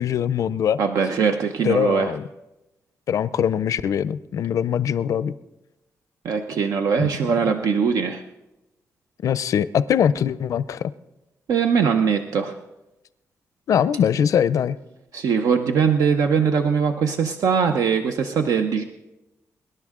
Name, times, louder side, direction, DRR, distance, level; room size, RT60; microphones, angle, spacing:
voice 1, 0.0-0.8 1.6-2.2 3.1-5.3 7.0-7.1 9.2-10.9 13.7-14.8, left 8 dB, 70° left, 16 dB, 0.5 m, -22 dB
voice 2, 0.8-2.1 6.2-8.2 11.5-12.5 15.1-18.8, right 6 dB, 80° right, 6 dB, 0.7 m, -21 dB
24.5 x 11.0 x 3.7 m, 0.97 s
wide cardioid pair, 135°, 6 cm